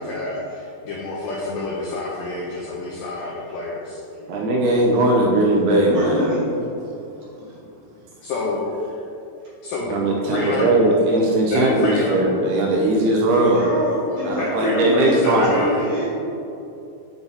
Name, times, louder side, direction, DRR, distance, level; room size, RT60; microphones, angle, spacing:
voice 1, 0.0-4.0 8.2-9.0 9.6-9.9 10.3-10.7 11.4-12.2 14.0-15.8, left 3 dB, 85° left, -5 dB, 1.9 m, -28 dB
voice 2, 4.3-6.3 9.9-13.6 14.2-15.6, right 1 dB, 75° right, -1 dB, 2.5 m, -19 dB
voice 3, 5.9-6.4 13.2-16.0, right 1 dB, 50° right, -9 dB, 2.7 m, -27 dB
6.8 x 6.0 x 4.1 m, 2.8 s
omnidirectional pair, 4.9 m